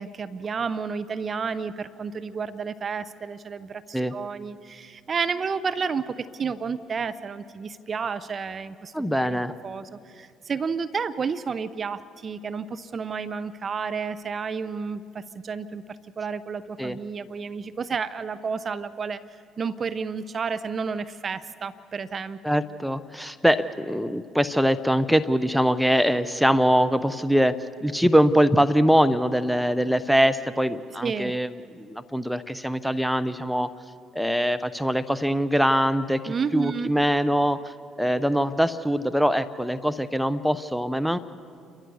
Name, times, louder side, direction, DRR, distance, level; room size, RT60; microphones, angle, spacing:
voice 1, 0.0-8.9 9.2-15.8 16.2-19.2 19.6-22.4 31.0-31.3 36.3-36.9, right 5 dB, 40° right, 13 dB, 0.7 m, -31 dB
voice 2, 8.9-9.5 16.8-17.0 22.4-33.7 34.1-41.2, equal, ahead, 11 dB, 0.8 m, -23 dB
29.5 x 13.5 x 7.0 m, 2.4 s
hypercardioid pair, 55°, 0 cm